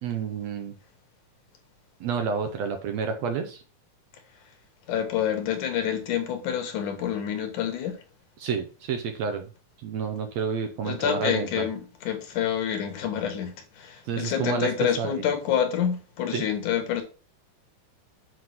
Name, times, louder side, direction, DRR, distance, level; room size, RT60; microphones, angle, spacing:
voice 1, 0.0-0.7 2.0-3.6 8.4-9.5 9.8-11.6 14.1-15.2 16.3-16.5, right 6 dB, 70° right, 1.8 m, -29 dB
voice 2, 4.9-8.0 10.8-17.0, left 9 dB, 75° left, 2.9 m, -28 dB
7.7 x 3.7 x 5.9 m
omnidirectional pair, 3.7 m